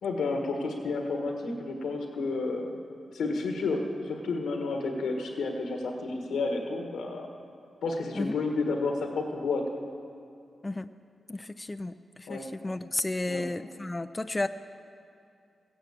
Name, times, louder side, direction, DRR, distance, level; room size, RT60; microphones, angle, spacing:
voice 1, 0.0-2.8 3.1-7.3 7.8-9.6 12.3-12.5 13.3-13.4, left 3 dB, 85° left, 3 dB, 1.5 m, -31 dB
voice 2, 11.3-14.5, left 2 dB, 25° left, 10 dB, 0.4 m, -33 dB
15.0 x 10.0 x 7.4 m, 2.5 s
cardioid pair, 50°, 0 cm